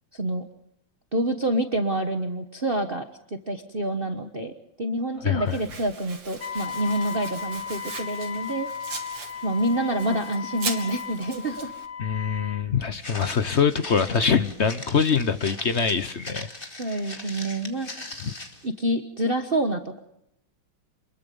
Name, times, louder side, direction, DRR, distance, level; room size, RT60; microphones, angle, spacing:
voice 1, 0.1-0.5 1.1-3.0 3.5-4.5 4.8-8.7 9.4-11.7 16.8-17.9 18.6-20.0, right 1 dB, 30° right, 5 dB, 1.2 m, -27 dB
voice 2, 5.2-5.6 12.0-16.5 16.9-17.0 18.2-18.3, left 6 dB, 50° left, 11 dB, 0.8 m, -24 dB
Domestic sounds home sounds, 5.5-11.9, right 4 dB, 85° right, 3.6 m, -39 dB
Wind instrument woodwind instrument, 6.4-12.6, left 7 dB, 85° left, 2.7 m, -36 dB
Walk footsteps, 13.0-18.7, left 2 dB, 25° left, 2.5 m, -40 dB
28.0 x 22.0 x 5.3 m, 0.80 s
omnidirectional pair, 2.3 m